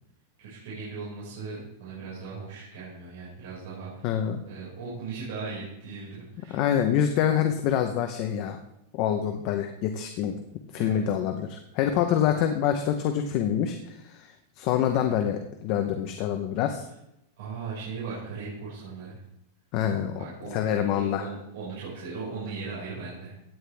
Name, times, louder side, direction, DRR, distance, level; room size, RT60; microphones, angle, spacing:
voice 1, 0.4-4.1 4.5-6.7 10.8-11.0 17.4-19.2 20.2-23.3, right 4 dB, 65° right, -7 dB, 5.3 m, -38 dB
voice 2, 4.0-4.4 6.5-8.6 8.9-10.4 10.7-16.8 19.7-20.1 20.5-21.3, left 9 dB, 35° left, 5 dB, 0.8 m, -26 dB
16.5 x 9.5 x 3.4 m, 0.83 s
supercardioid pair, 175°, 0 cm